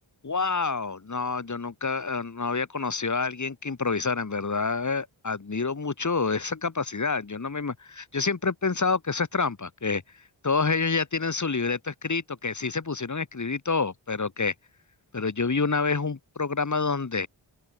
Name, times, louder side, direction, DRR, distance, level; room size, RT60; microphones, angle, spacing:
voice 1, 0.2-10.0 10.4-14.5 15.1-17.3, left 4 dB, 35° left, 1.5 m, -28 dB
open air
cardioid pair, 45°, 47 cm